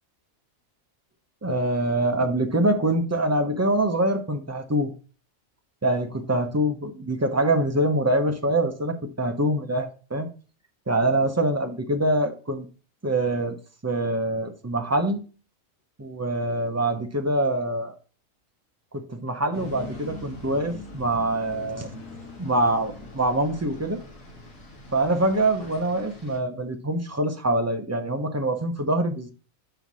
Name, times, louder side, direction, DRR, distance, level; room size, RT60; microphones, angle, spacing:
voice 1, 1.4-4.9 5.8-10.3 10.9-12.7 13.0-13.6 13.8-15.2 16.0-17.9 18.9-21.9 22.4-24.0 24.9-29.3, right 1 dB, 20° right, 5 dB, 0.5 m, -24 dB
sound 1, 19.5-26.4, left 1 dB, 75° left, 2.1 m, -42 dB
5.4 x 4.5 x 6.1 m, 0.36 s
omnidirectional pair, 1.5 m